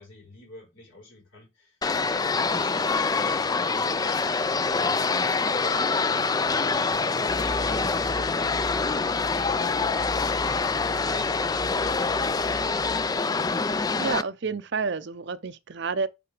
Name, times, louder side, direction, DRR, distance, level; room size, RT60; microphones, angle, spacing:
voice 1, 0.0-5.2, left 2 dB, 65° left, 4.2 m, -49 dB
sound 1, 1.8-14.2, left 4 dB, 20° left, 0.3 m, -25 dB
sound 2, 7.3-13.1, equal, 45° left, 1.1 m, -39 dB
voice 2, 14.0-16.1, right 4 dB, 55° right, 0.6 m, -29 dB
8.9 x 3.8 x 4.9 m
head